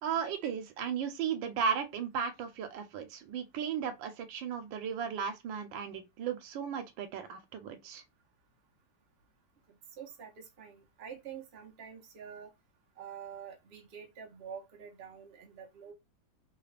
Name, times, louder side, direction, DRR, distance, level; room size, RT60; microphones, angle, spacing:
voice 1, 0.0-8.0, right 7 dB, 85° right, 1.4 m, -35 dB
voice 2, 9.7-12.5 13.0-15.9, right 7 dB, 45° right, 0.8 m, -47 dB
3.4 x 2.4 x 3.3 m
omnidirectional pair, 2.0 m